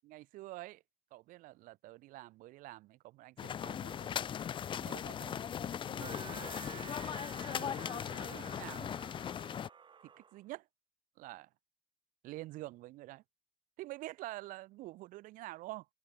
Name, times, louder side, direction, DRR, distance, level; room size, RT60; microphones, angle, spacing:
voice 1, 0.0-0.8 1.1-4.3 4.8-8.9 10.0-10.7 11.2-11.5 12.2-13.2 13.8-15.9, right 18 dB, 65° right, 1.4 m, -48 dB
sound 1, 3.4-9.7, left 8 dB, 35° left, 0.4 m, -39 dB
sound 2, 6.0-10.4, right 6 dB, 35° right, 0.8 m, -51 dB
open air
hypercardioid pair, 50°, 15 cm